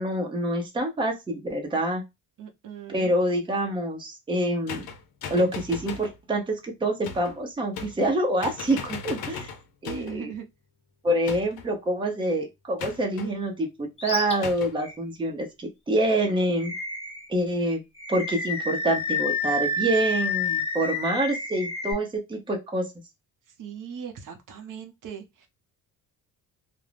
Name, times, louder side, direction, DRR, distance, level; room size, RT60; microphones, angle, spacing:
voice 1, 0.0-2.0 2.9-4.8 5.3-9.5 9.8-10.3 11.0-16.7 17.3-17.8 18.1-22.8, right 1 dB, 15° right, 0.6 m, -26 dB
voice 2, 2.4-3.1 9.9-10.5 23.6-25.5, right 7 dB, 60° right, 0.6 m, -39 dB
sound 1, 4.7-6.2 7.0-7.4 7.7-8.2 8.4-10.2 11.3-11.7 12.8-13.3 14.4-14.8, left 6 dB, 80° left, 0.6 m, -38 dB
Animal, 14.0-14.3 14.8-15.0 16.6-17.3 18.0-21.9, left 2 dB, 15° left, 0.9 m, -29 dB
2.4 x 2.0 x 3.2 m
cardioid pair, 130°, 35 cm